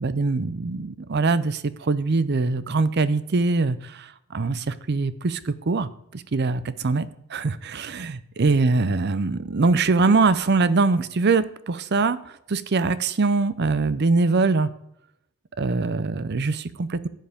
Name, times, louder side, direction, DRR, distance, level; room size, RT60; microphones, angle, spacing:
voice 1, 0.0-14.7 15.6-17.1, right 3 dB, 50° right, 15 dB, 0.6 m, -23 dB
11.5 x 9.1 x 3.5 m, 0.75 s
head